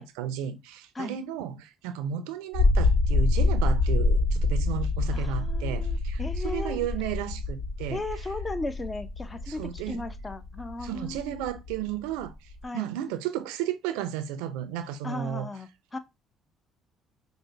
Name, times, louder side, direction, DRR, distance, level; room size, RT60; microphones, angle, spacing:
voice 1, 0.0-8.0 9.5-10.1 10.8-12.3 12.7-15.5, right 10 dB, 85° right, 0.5 m, -33 dB
sound 1, 2.5-12.6, left 2 dB, 75° left, 1.4 m, -26 dB
voice 2, 5.1-6.8 7.9-11.4 12.6-12.9 15.0-16.0, left 2 dB, 25° left, 0.7 m, -36 dB
5.0 x 2.2 x 3.3 m
supercardioid pair, 65°, 0 cm